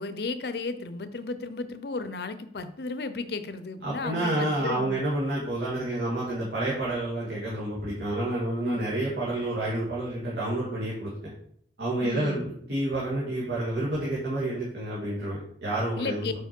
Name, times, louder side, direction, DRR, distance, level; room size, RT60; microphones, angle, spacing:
voice 1, 0.0-5.0 8.6-8.8 12.0-12.5 16.0-16.3, left 3 dB, 60° left, 11 dB, 0.6 m, -34 dB
voice 2, 3.8-11.3 11.8-16.3, right 1 dB, 70° right, -7 dB, 1.8 m, -29 dB
5.8 x 4.6 x 4.4 m, 0.66 s
head